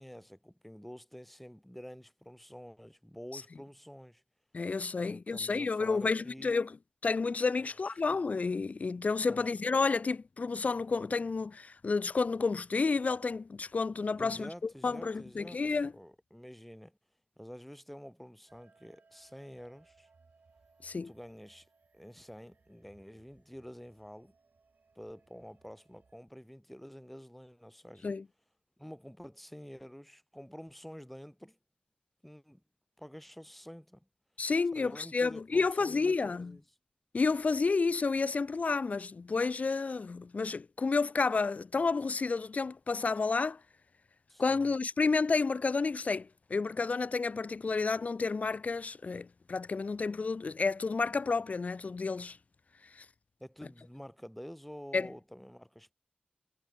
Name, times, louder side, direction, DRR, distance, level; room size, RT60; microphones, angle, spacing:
voice 1, 0.0-4.2 5.0-6.6 7.6-7.9 9.3-9.6 14.2-17.0 17.4-20.1 21.0-21.7 21.9-24.3 24.9-28.1 28.8-31.6 32.2-32.6 33.0-34.1 34.7-36.6 44.3-44.8 53.4-55.9, equal, 5° left, 5.1 m, -49 dB
voice 2, 4.5-6.8 7.0-14.5 14.8-15.9 20.8-21.1 28.0-28.2 34.4-36.6 37.1-43.6 44.4-52.4 53.0-53.1 54.9-55.1, left 4 dB, 55° left, 0.3 m, -30 dB
sound 1, 18.5-26.2, right 4 dB, 70° right, 7.9 m, -67 dB
wide cardioid pair, 80°, 3 cm